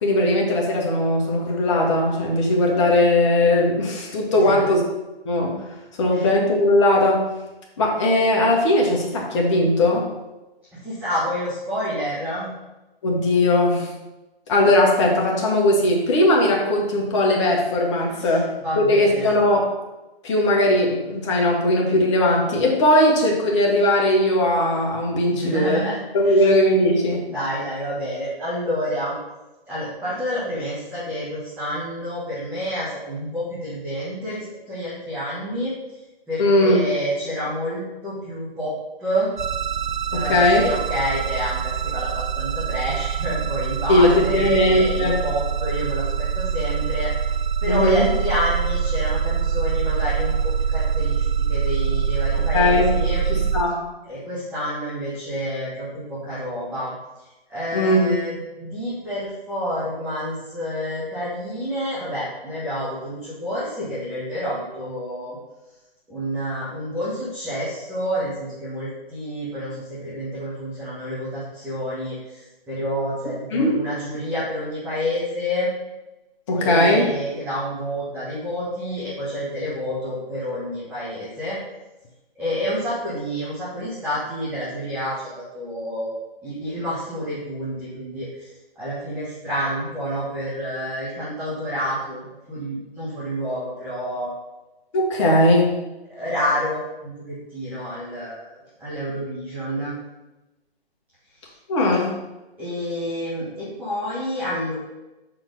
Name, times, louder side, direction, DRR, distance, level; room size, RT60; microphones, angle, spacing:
voice 1, 0.0-4.8 5.2-5.6 6.0-7.3 7.8-10.1 13.0-13.9 14.5-19.7 20.2-25.8 26.1-27.3 36.4-36.8 40.1-40.6 43.9-45.2 47.7-48.1 52.3-52.9 53.3-53.9 57.7-58.2 73.5-73.8 76.5-77.1 94.9-95.9 101.7-102.2, left 1 dB, 30° left, -1 dB, 1.4 m, -19 dB
voice 2, 4.3-4.7 6.1-6.3 10.7-12.5 18.1-19.3 25.3-26.0 26.2-26.4 27.3-29.1 29.7-35.7 36.3-38.7 39.0-39.3 40.1-47.1 47.6-53.2 54.0-56.9 57.5-65.4 66.1-75.7 76.6-81.6 82.3-92.2 92.5-94.3 96.1-99.9 101.4-101.5 102.6-104.7, equal, 5° right, -11 dB, 1.3 m, -29 dB
sound 1, 39.4-53.6, right 7 dB, 50° right, 0.6 m, -24 dB
5.4 x 4.5 x 5.3 m, 1.0 s
figure-of-eight pair, 145°, 30 cm